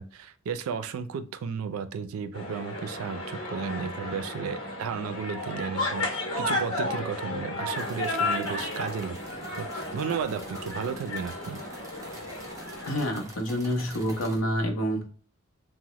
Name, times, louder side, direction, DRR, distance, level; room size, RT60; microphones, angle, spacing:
voice 1, 0.0-9.2 9.6-11.6, right 6 dB, 80° right, 10 dB, 0.3 m, -34 dB
sound 1, 2.3-13.0, left 2 dB, 90° left, 1.0 m, -33 dB
sound 2, 7.7-14.4, right 1 dB, 15° right, 0.5 m, -46 dB
voice 2, 12.8-15.1, equal, 75° left, 3 dB, 0.7 m, -28 dB
2.8 x 2.0 x 2.9 m, 0.42 s
head